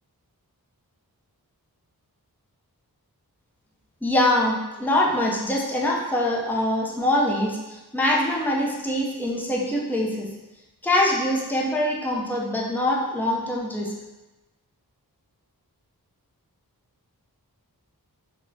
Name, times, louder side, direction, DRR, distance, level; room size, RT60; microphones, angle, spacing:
voice 1, 4.0-10.3 10.8-13.9, left 1 dB, 5° left, -3 dB, 0.4 m, -24 dB
2.8 x 2.1 x 2.6 m, 1.1 s
wide cardioid pair, 60°, 38 cm